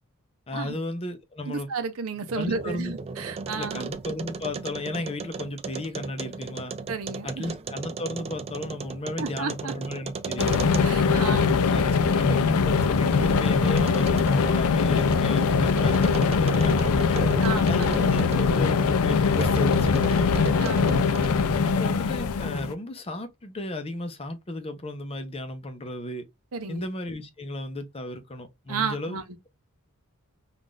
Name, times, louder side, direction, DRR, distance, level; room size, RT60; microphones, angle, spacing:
voice 1, 0.5-1.7 2.3-3.0 3.5-6.7 7.2-17.2 17.7-20.4 21.6-26.3 26.7-29.2, left 1 dB, 25° left, 0.6 m, -34 dB
voice 2, 1.5-3.9 6.9-7.6 9.2-9.7 10.8-11.6 17.4-18.1 20.6-21.0 26.5-26.9 28.7-29.2, right 5 dB, 70° right, 0.6 m, -32 dB
sound 1, 2.2-11.1 11.6-18.9 19.4-21.5, right 4 dB, 25° right, 0.3 m, -36 dB
sound 2, 10.4-22.7, left 5 dB, 70° left, 0.4 m, -22 dB
3.6 x 2.4 x 2.4 m
head